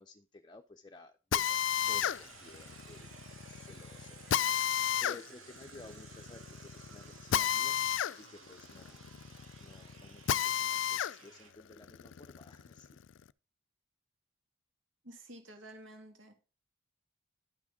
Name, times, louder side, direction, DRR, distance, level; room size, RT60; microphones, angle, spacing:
voice 1, 0.0-7.8 8.2-9.0 9.6-13.0, left 2 dB, 20° left, 6 dB, 0.6 m, -55 dB
Drill, 1.3-11.2 11.6-13.2, left 10 dB, 65° left, 0.4 m, -33 dB
sound 1, 2.0-11.5, right 5 dB, 85° right, 2.4 m, -55 dB
voice 2, 15.0-16.3, right 1 dB, 70° right, 4 dB, 2.3 m, -51 dB
11.0 x 6.1 x 3.6 m, 0.33 s
head